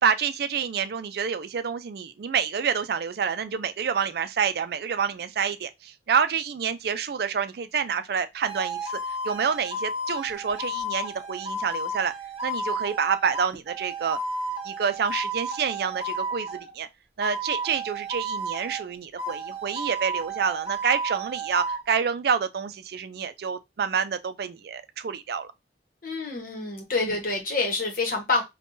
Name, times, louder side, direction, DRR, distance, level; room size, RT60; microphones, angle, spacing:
voice 1, 0.0-8.9 9.2-12.1 12.4-14.2 14.6-16.9 17.2-25.5 27.0-27.1, right 6 dB, 60° right, 0.4 m, -28 dB
sound 1, 8.4-16.7 17.2-18.9 19.2-21.8, right 1 dB, 35° right, 0.8 m, -32 dB
voice 2, 26.0-28.4, left 3 dB, 50° left, 1.0 m, -27 dB
5.3 x 2.3 x 2.6 m
head